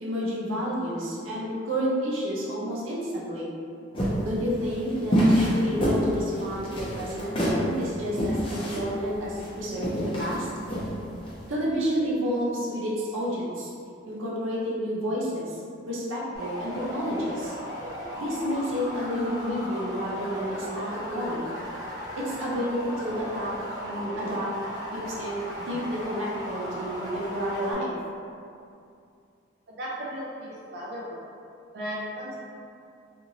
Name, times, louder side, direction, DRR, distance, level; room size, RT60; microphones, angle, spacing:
voice 1, 0.0-3.5 4.2-10.5 11.5-13.7 14.1-15.6 15.9-17.5 18.2-21.5 22.2-23.5 23.8-24.5 24.9-27.9, equal, 90° right, -6 dB, 0.7 m, -30 dB
sound 1, 3.9-11.4, equal, 25° left, 0.5 m, -26 dB
sound 2, 16.3-27.7, equal, 15° right, 0.7 m, -37 dB
voice 2, 29.7-31.2 31.7-32.3, equal, 55° right, -7 dB, 0.4 m, -35 dB
2.6 x 2.5 x 2.9 m, 2.4 s
head